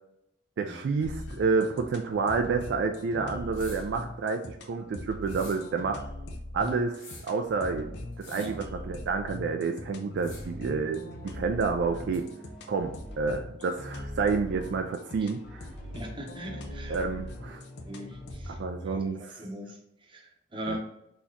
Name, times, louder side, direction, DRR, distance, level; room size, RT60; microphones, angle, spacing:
voice 1, 0.6-6.0 6.5-7.9 8.2-12.3 12.7-15.7 16.9-17.6 18.5-19.2 20.7-20.8, right 4 dB, 65° right, 5 dB, 0.3 m, -29 dB
sound 1, 1.0-18.6, left 1 dB, 65° left, 0.5 m, -41 dB
sound 2, 3.5-3.9 5.2-5.7 6.9-7.4 8.1-8.6 10.2-10.6 12.1-12.2, left 3 dB, 45° left, 1.3 m, -48 dB
sound 3, 9.8-19.0, left 1 dB, ahead, 1.2 m, -48 dB
voice 2, 15.9-17.0 17.8-20.8, equal, 30° right, 1 dB, 0.8 m, -41 dB
4.0 x 2.9 x 2.6 m, 0.80 s
head